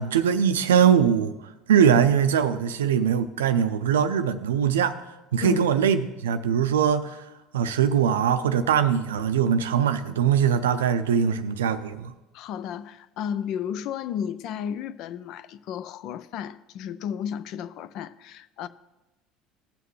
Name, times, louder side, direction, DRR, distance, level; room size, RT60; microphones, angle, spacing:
voice 1, 0.0-1.3 1.7-5.0 5.3-7.2 7.5-12.1, right 8 dB, 90° right, 0.4 m, -22 dB
voice 2, 12.3-18.7, left 8 dB, 60° left, 0.4 m, -33 dB
15.0 x 5.9 x 3.2 m
hypercardioid pair, 75°, 0 cm